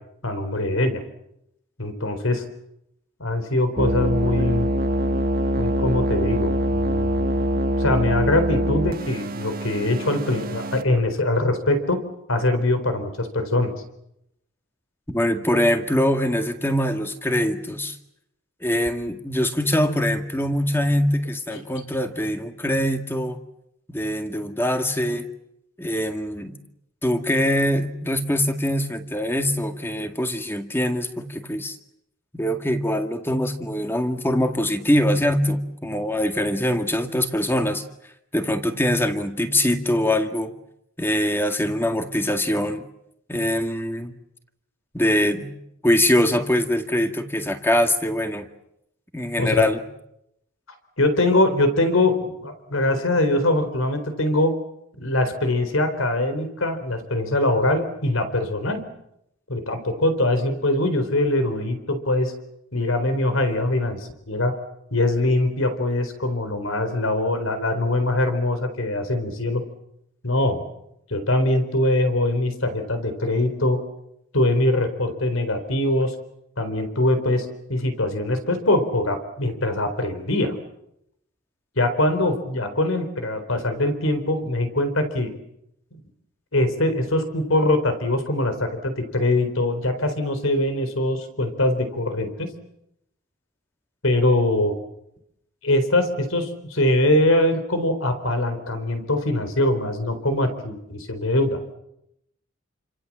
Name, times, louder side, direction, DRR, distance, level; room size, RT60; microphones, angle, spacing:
voice 1, 0.2-1.0 1.8-2.4 3.2-4.7 5.6-12.0 12.3-13.7 49.4-49.7 51.0-54.5 55.0-58.8 59.5-62.3 62.7-64.5 64.9-69.6 70.2-70.6 71.1-73.8 74.3-76.1 76.6-80.5 81.8-85.3 86.5-92.5 94.0-94.7 95.6-101.6, left 1 dB, 80° left, 9 dB, 4.2 m, -22 dB
sound 1, 3.8-10.8, right 1 dB, 45° right, 1.5 m, -24 dB
voice 2, 15.1-18.0 18.6-23.4 23.9-25.3 25.8-26.6 27.0-31.8 32.3-37.8 38.3-40.5 41.0-42.9 43.3-44.1 44.9-45.5 45.8-48.5 49.1-49.8, left 1 dB, 10° left, 6 dB, 1.9 m, -23 dB
29.0 x 26.5 x 7.5 m, 0.82 s
head